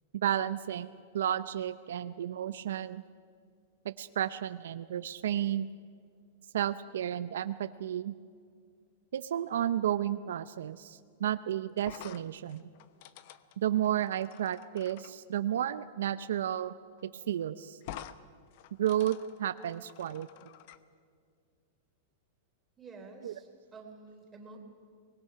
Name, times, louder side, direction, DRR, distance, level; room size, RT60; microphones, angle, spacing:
voice 1, 0.2-3.0 3.8-5.7 6.5-8.1 9.1-12.6 13.6-16.7 17.0-17.8 18.8-20.3 23.2-23.3, right 11 dB, 80° right, 12 dB, 0.6 m, -32 dB
sound 1, 11.8-15.1 16.6-16.7 17.0-17.1 17.8-18.2 18.5-20.8, left 11 dB, 50° left, 0.8 m, -49 dB
voice 2, 22.8-24.6, right 3 dB, 15° right, 1 dB, 3.5 m, -50 dB
24.5 x 20.0 x 5.8 m, 2.1 s
supercardioid pair, 155°, 0 cm